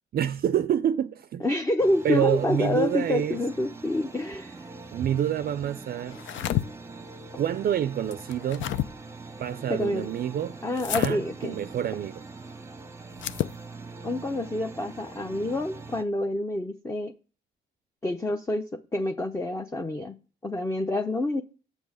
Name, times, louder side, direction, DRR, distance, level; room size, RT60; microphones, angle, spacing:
voice 1, 0.1-1.4 2.0-3.4 4.9-6.2 7.4-8.7 9.4-10.6 10.9-12.2, right 10 dB, 50° right, 0.4 m, -27 dB
voice 2, 1.4-4.6 9.7-10.1 10.6-11.6 14.0-17.1 18.0-20.1 20.4-21.4, left 1 dB, 15° left, 0.6 m, -27 dB
sound 1, 1.8-16.0, right 3 dB, 15° right, 0.8 m, -43 dB
sound 2, 6.1-6.6 8.1-8.9 10.8-11.1 13.1-13.6, left 12 dB, 70° left, 0.5 m, -29 dB
7.2 x 5.4 x 6.1 m
cardioid pair, 90°, 20 cm